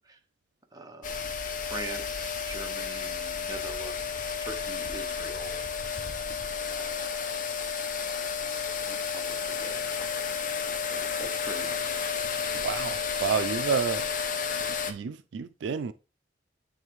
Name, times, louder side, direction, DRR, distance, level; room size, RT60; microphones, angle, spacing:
voice 1, 0.7-5.6 6.7-7.4 8.8-10.3 10.6-12.2, right 2 dB, 20° right, 0.8 m, -43 dB
sound 1, 1.0-14.9, left 6 dB, 45° left, 0.7 m, -32 dB
voice 2, 12.5-14.1 14.9-15.9, right 6 dB, 85° right, 0.4 m, -30 dB
8.9 x 3.4 x 3.1 m
head